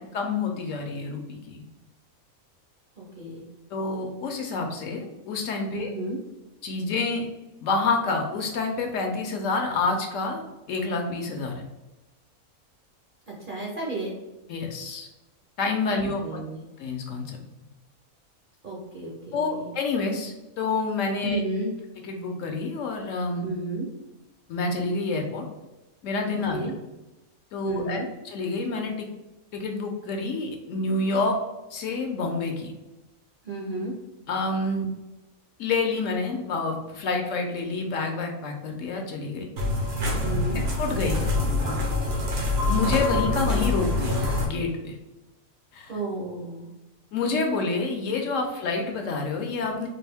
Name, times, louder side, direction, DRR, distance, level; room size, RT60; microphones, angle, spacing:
voice 1, 0.1-1.6 3.7-5.9 6.6-7.3 7.6-10.4 10.7-11.7 14.5-15.1 15.6-16.4 16.8-17.4 19.3-21.4 22.0-23.5 24.5-25.5 26.0-26.7 27.5-29.1 29.5-31.4 31.7-32.7 34.3-34.9 35.6-39.5 40.0-40.3 40.8-41.3 42.7-45.0 45.7-45.9 47.1-49.9, left 3 dB, 70° left, 3 dB, 0.9 m, -28 dB
voice 2, 3.0-3.4 5.7-6.2 13.3-14.2 15.9-16.6 18.6-19.7 21.2-21.7 23.4-23.9 26.5-26.7 27.6-28.1 33.4-33.9 40.2-40.6 45.9-46.7, right 2 dB, 50° right, -3 dB, 0.6 m, -32 dB
sound 1, 39.6-44.5, left 2 dB, 85° right, 1.4 m, -25 dB
4.0 x 2.6 x 3.4 m, 1.0 s
omnidirectional pair, 1.5 m